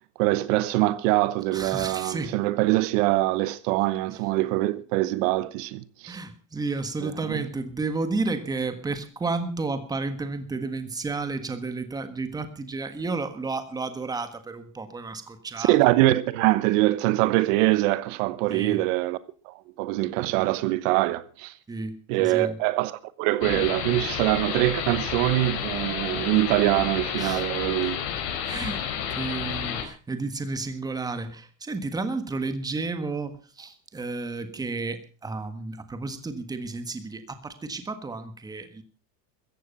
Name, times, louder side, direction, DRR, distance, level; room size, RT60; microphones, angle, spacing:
voice 1, 0.2-6.2 7.0-7.4 15.6-19.2 19.4-21.5 22.1-28.0, right 17 dB, 70° right, 1.1 m, -24 dB
voice 2, 1.5-2.4 6.1-15.8 17.0-17.1 18.5-18.8 21.7-22.6 27.2-27.4 28.4-28.8 29.1-38.8, right 3 dB, 10° right, 1.5 m, -32 dB
sound 1, 23.4-29.8, left 8 dB, 70° left, 4.7 m, -31 dB
16.5 x 14.5 x 5.3 m
cardioid pair, 170°, 40 cm